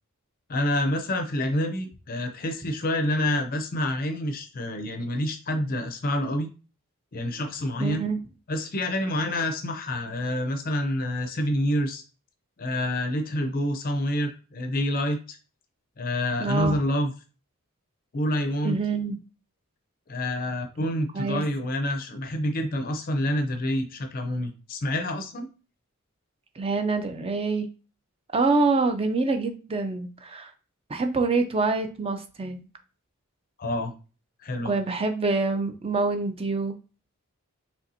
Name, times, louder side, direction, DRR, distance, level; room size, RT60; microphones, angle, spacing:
voice 1, 0.5-6.5 7.1-8.0 8.5-12.0 12.6-15.4 16.0-17.1 18.1-18.8 20.1-25.5 33.6-33.9 34.4-34.7, left 1 dB, 40° left, 6 dB, 0.5 m, -27 dB
voice 2, 7.8-8.2 16.4-16.7 18.6-19.2 21.1-21.4 26.6-27.7 28.3-30.5 30.9-32.7 34.6-36.7, right 3 dB, 25° right, 7 dB, 0.5 m, -26 dB
5.4 x 3.3 x 2.7 m, 0.34 s
head